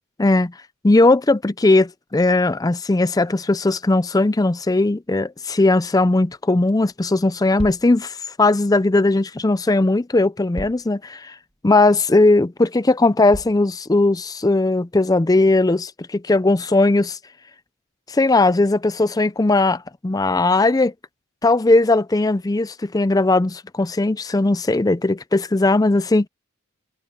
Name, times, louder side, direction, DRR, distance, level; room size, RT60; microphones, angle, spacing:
voice 1, 0.2-0.5 0.8-11.3 11.6-17.2 18.1-20.9 21.4-26.3, left 2 dB, 15° left, 0.4 m, -18 dB
sound 1, 7.6-7.9 9.5-9.6 10.5-10.9 11.5-11.6 12.2-12.3 13.3-13.6, right 1 dB, 30° right, 1.3 m, -33 dB
head